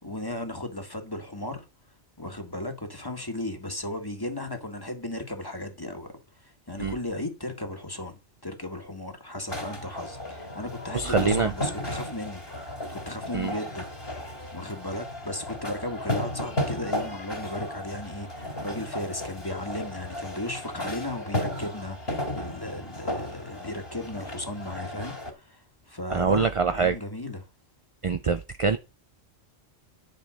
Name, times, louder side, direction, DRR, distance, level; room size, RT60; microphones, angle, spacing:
voice 1, 0.0-1.7 2.2-6.1 6.4-13.8 14.5-27.5, left 1 dB, 20° left, 1.9 m, -36 dB
sound 1, 9.5-25.3, left 1 dB, 55° left, 3.4 m, -34 dB
voice 2, 10.9-11.5 13.3-13.5 26.1-27.0 28.0-28.8, right 5 dB, 40° right, 0.5 m, -24 dB
10.5 x 5.2 x 6.4 m
omnidirectional pair, 1.2 m